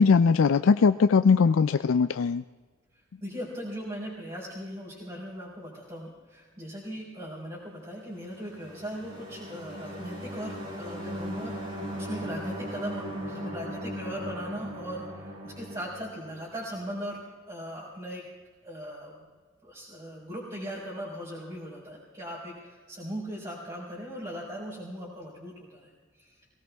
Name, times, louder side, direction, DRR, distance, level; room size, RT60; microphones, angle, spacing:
voice 1, 0.0-2.4, left 5 dB, 90° left, 11 dB, 0.4 m, -20 dB
voice 2, 3.2-17.2 17.5-18.2 18.6-19.3 19.6-25.9 26.2-26.3, equal, 25° right, -8 dB, 4.2 m, -39 dB
sound 1, 8.1-16.8, equal, 45° right, 5.4 m, -38 dB
22.5 x 17.5 x 3.5 m, 1.4 s
head